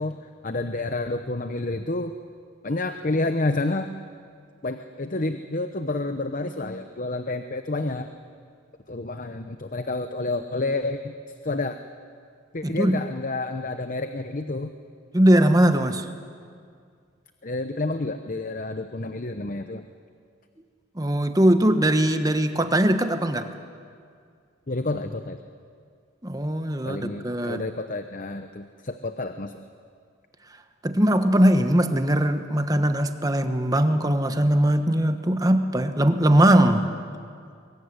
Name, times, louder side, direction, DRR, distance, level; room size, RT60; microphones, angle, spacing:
voice 1, 0.0-2.1 2.6-3.9 4.6-8.1 8.9-11.7 12.5-14.7 17.4-19.9 24.7-25.4 26.8-29.6, left 2 dB, 40° left, 8 dB, 0.8 m, -29 dB
voice 2, 12.6-13.0 15.1-16.1 20.9-23.5 26.2-27.6 30.8-36.9, right 1 dB, 15° right, 8 dB, 1.2 m, -20 dB
23.5 x 22.5 x 9.8 m, 2.2 s
head